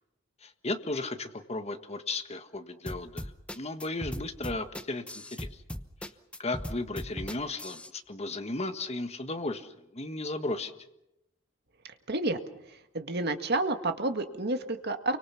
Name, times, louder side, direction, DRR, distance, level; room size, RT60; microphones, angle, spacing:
voice 1, 0.4-3.3 3.5-5.5 6.4-9.7 9.9-10.7, left 2 dB, 35° left, 8 dB, 1.6 m, -35 dB
sound 1, 2.9-7.9, equal, 5° left, 0.9 m, -39 dB
voice 2, 12.1-12.4 12.7-15.2, right 2 dB, 55° right, 6 dB, 1.9 m, -30 dB
29.0 x 24.5 x 5.8 m, 0.88 s
head